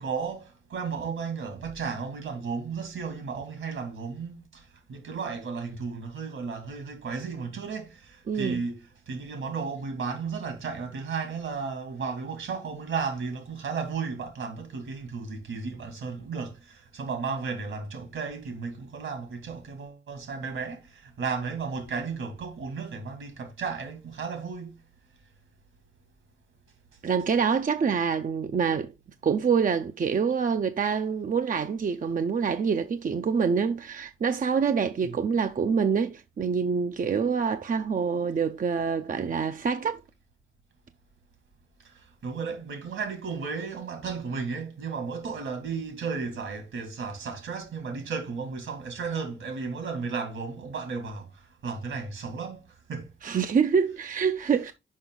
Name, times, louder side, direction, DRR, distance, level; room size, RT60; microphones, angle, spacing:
voice 1, 0.0-24.8 35.0-35.2 39.1-39.4 41.8-53.1, right 5 dB, 80° right, 2.5 m, -34 dB
voice 2, 8.3-8.6 27.0-28.9 29.2-40.0 53.2-54.7, right 6 dB, 40° right, 0.6 m, -26 dB
6.3 x 5.2 x 3.8 m
cardioid pair, 75°, 20 cm